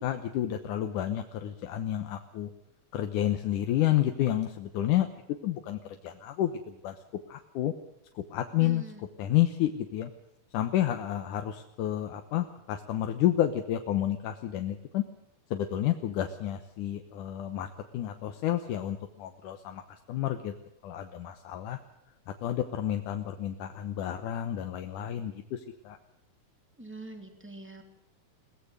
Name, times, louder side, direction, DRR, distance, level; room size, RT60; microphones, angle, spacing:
voice 1, 0.0-2.5 2.9-5.1 5.4-7.0 7.3-7.7 8.2-8.8 9.2-10.1 10.5-15.0 15.5-20.5 20.8-21.8 22.4-26.0, left 12 dB, 80° left, 6 dB, 2.6 m, -30 dB
voice 2, 8.6-9.1 26.8-27.8, right 2 dB, 5° right, 5 dB, 2.7 m, -43 dB
22.5 x 18.5 x 6.6 m, 0.82 s
omnidirectional pair, 3.6 m